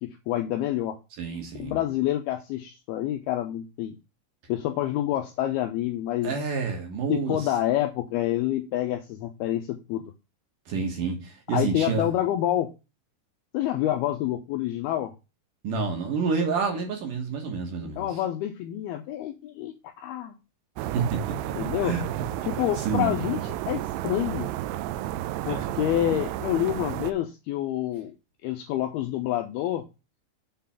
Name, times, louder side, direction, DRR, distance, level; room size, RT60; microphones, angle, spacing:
voice 1, 0.0-1.0 1.6-4.0 4.5-6.3 7.1-10.0 11.5-12.7 13.5-15.1 18.0-20.4 21.6-21.9 22.4-24.5 25.4-28.1 28.4-29.8, left 13 dB, 90° left, 2.2 m, -28 dB
voice 2, 1.2-1.8 6.2-7.5 10.7-12.1 15.6-18.2 20.8-21.5 21.8-23.2 25.5-25.8, right 5 dB, 60° right, 2.5 m, -29 dB
sound 1, 20.8-27.1, right 13 dB, 85° right, 2.7 m, -32 dB
7.5 x 3.8 x 5.7 m
omnidirectional pair, 5.2 m